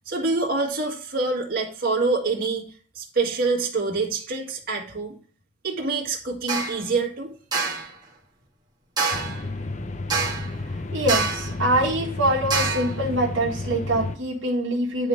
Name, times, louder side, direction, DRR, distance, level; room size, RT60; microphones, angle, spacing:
voice 1, 0.1-5.2 5.6-7.3, right 3 dB, 50° right, -2 dB, 1.9 m, -26 dB
sound 1, 6.5-6.8 7.5-7.9 9.0-9.4 10.1-10.5 11.1-11.5 12.5-12.9, right 4 dB, 20° right, 1.6 m, -25 dB
sound 2, 9.1-14.2, left 2 dB, 35° left, 0.6 m, -31 dB
voice 2, 10.9-15.1, right 1 dB, 70° right, -2 dB, 1.8 m, -24 dB
10.0 x 3.6 x 5.3 m, 0.41 s
head